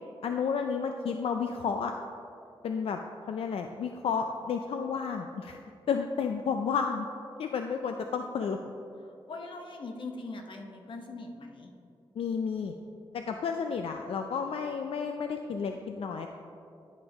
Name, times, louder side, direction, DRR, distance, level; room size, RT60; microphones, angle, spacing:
voice 1, 0.2-1.9 2.6-3.0 3.3-5.6 5.9-7.1 7.4-8.6 12.2-12.7 13.1-16.3, left 6 dB, 85° left, 5 dB, 0.3 m, -31 dB
voice 2, 9.3-11.7, left 3 dB, 60° left, 3 dB, 0.8 m, -41 dB
10.5 x 5.3 x 3.4 m, 2.6 s
wide cardioid pair, 135°, 9 cm